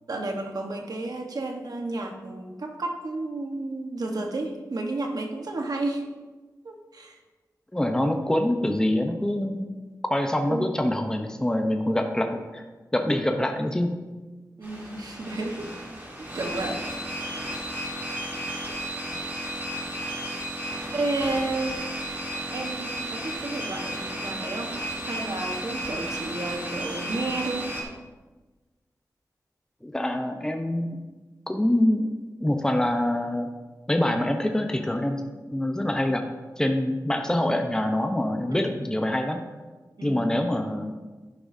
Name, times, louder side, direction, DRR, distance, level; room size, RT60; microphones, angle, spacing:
voice 1, 0.1-6.0 6.6-7.2 10.5-10.7 14.6-15.8 16.2-16.8 19.1-19.2 19.9-20.0 20.9-21.9 22.5-27.7 38.5-38.9 40.0-40.3, right 2 dB, 65° right, 2 dB, 1.2 m, -32 dB
voice 2, 7.7-9.7 10.1-12.6 12.9-13.9 29.8-31.0 31.5-32.1 32.4-33.5 33.9-35.2 35.5-36.2 36.6-39.4 40.0-40.9, left 1 dB, 10° left, 4 dB, 0.8 m, -25 dB
sound 1, 14.6-27.8, equal, 30° right, 3.1 m, -33 dB
11.0 x 10.0 x 2.7 m, 1.3 s
wide cardioid pair, 80°, 7 cm